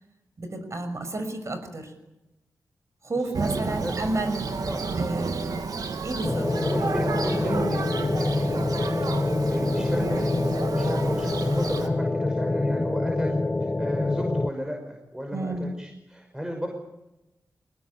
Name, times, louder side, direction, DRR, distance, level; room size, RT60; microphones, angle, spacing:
voice 1, 0.4-1.9 3.0-4.5 5.0-5.7 6.0-6.5 15.3-15.7, right 2 dB, 50° right, 9 dB, 6.1 m, -31 dB
Thunder, 3.3-11.9, right 4 dB, 75° right, 2.5 m, -31 dB
voice 2, 3.6-4.0 4.6-4.8 6.6-16.7, equal, 10° right, 2 dB, 5.9 m, -34 dB
sound 1, 6.2-14.5, left 2 dB, 25° left, 0.8 m, -26 dB
22.5 x 20.0 x 8.4 m, 0.95 s
cardioid pair, 65°, 6 cm